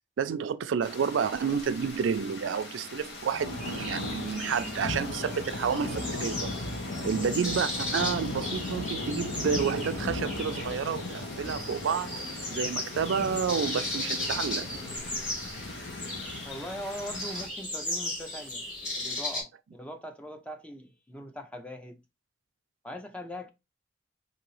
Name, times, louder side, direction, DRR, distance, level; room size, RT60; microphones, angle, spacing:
voice 1, 0.2-6.5 7.0-12.2 12.5-14.8, right 6 dB, 85° right, 0.4 m, -30 dB
sound 1, 0.8-17.5, left 2 dB, 70° left, 1.1 m, -37 dB
sound 2, 3.6-19.4, left 2 dB, 45° left, 2.5 m, -37 dB
voice 2, 16.4-18.6 18.9-22.0 22.8-23.5, equal, 5° left, 0.4 m, -41 dB
3.9 x 2.7 x 3.0 m
head